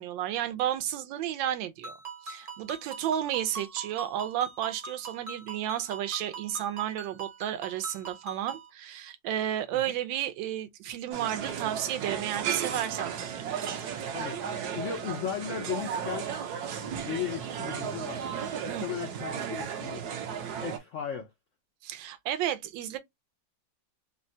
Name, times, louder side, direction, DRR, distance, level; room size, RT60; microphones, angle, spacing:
voice 1, 0.0-1.9 2.2-13.4 18.7-18.9 21.8-23.0, right 11 dB, 90° right, 1.3 m, -32 dB
Ringtone, 1.8-8.7, right 4 dB, 40° right, 0.8 m, -42 dB
sound 1, 11.1-20.8, right 8 dB, 65° right, 1.1 m, -34 dB
voice 2, 14.7-16.3 17.0-18.2 18.6-20.1 20.6-21.3, left 9 dB, 90° left, 0.6 m, -36 dB
3.7 x 2.1 x 2.6 m
omnidirectional pair, 2.0 m